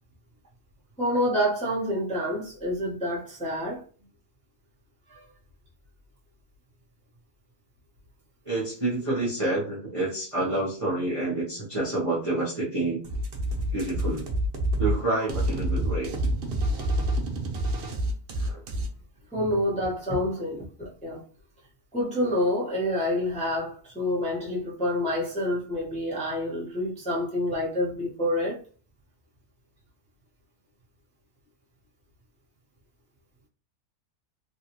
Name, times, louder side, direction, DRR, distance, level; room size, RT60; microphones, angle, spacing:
voice 1, 1.0-3.8 5.1-5.2 19.3-21.2 21.9-28.6, left 1 dB, 5° left, 0.7 m, -28 dB
voice 2, 8.5-13.0 13.7-14.3 14.8-16.1 18.4-18.6, right 2 dB, 30° right, 0.7 m, -28 dB
sound 1, 13.0-18.9, right 1 dB, 55° right, 0.7 m, -27 dB
3.5 x 2.3 x 2.9 m
omnidirectional pair, 1.6 m